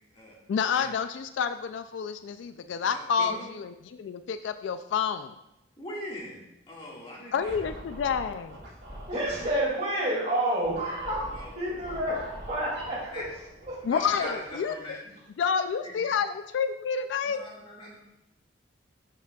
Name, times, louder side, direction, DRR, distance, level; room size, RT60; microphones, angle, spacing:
voice 1, 0.5-5.3 7.3-8.6 13.8-14.7 15.4-17.4, left 6 dB, 75° left, 10 dB, 0.3 m, -29 dB
voice 2, 2.9-3.4 5.8-7.7 9.4-9.5 11.3-11.5 13.1-13.2 13.9-15.0 15.8-16.1 17.2-18.0, left 1 dB, 30° left, -4 dB, 1.9 m, -40 dB
Scratching (performance technique), 7.4-9.7 10.6-14.9, equal, 65° right, 2.4 m, -45 dB
voice 3, 9.1-11.3 11.5-13.1, right 1 dB, 35° right, -6 dB, 2.6 m, -29 dB
11.5 x 5.9 x 2.3 m, 0.88 s
head